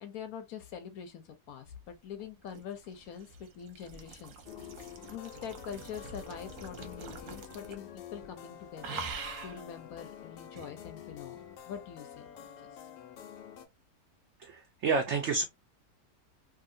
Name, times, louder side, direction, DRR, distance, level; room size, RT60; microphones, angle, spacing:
voice 1, 0.0-4.3 5.1-12.5, left 8 dB, 70° left, 1.0 m, -44 dB
sound 1, 2.2-7.9 8.2-8.5 8.8-9.6 10.6-10.7, right 5 dB, 60° right, 0.9 m, -44 dB
sound 2, 4.5-13.7, left 9 dB, 90° left, 1.3 m, -48 dB
voice 2, 14.4-15.4, right 4 dB, 85° right, 0.6 m, -29 dB
2.8 x 2.6 x 2.5 m
omnidirectional pair, 1.8 m